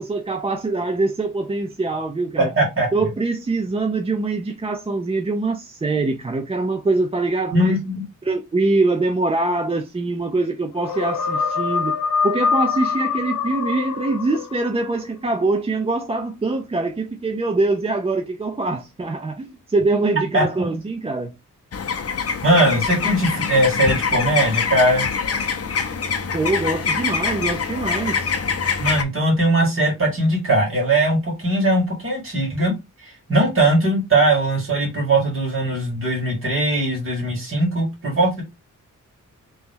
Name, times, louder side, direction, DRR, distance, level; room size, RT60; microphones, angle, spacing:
voice 1, 0.0-2.5 2.9-7.8 8.2-11.9 12.2-21.3 26.3-28.3, right 3 dB, 20° right, 0.4 m, -23 dB
voice 2, 2.4-2.9 7.5-8.0 20.3-20.4 22.4-25.1 28.8-32.7 33.3-38.4, right 1 dB, 40° right, 2.0 m, -20 dB
sound 1, 10.8-14.9, left 5 dB, 90° left, 0.7 m, -24 dB
sound 2, 21.7-29.0, left 6 dB, 45° left, 0.6 m, -24 dB
3.0 x 2.8 x 3.6 m
wide cardioid pair, 145°, 33 cm